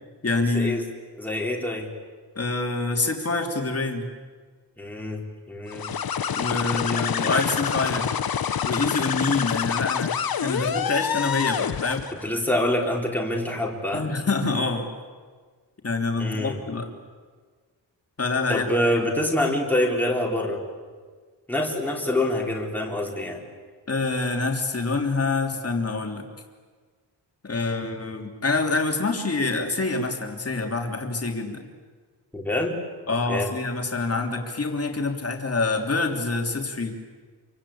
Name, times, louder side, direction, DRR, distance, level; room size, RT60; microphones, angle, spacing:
voice 1, 0.2-0.8 2.4-4.0 6.3-8.1 8.6-12.1 13.9-14.9 15.8-16.9 18.2-18.7 23.9-26.3 27.4-31.7 33.1-36.9, left 3 dB, 35° left, 3 dB, 3.2 m, -26 dB
voice 2, 1.2-1.9 4.8-5.9 6.6-7.5 12.2-14.1 16.2-16.6 18.5-20.6 21.5-23.4 32.3-32.8 33.3-33.5, left 1 dB, 5° left, 0 dB, 4.0 m, -26 dB
sound 1, 5.7-12.2, left 8 dB, 55° left, 1.0 m, -27 dB
28.0 x 24.0 x 8.7 m, 1.5 s
wide cardioid pair, 165°, 43 cm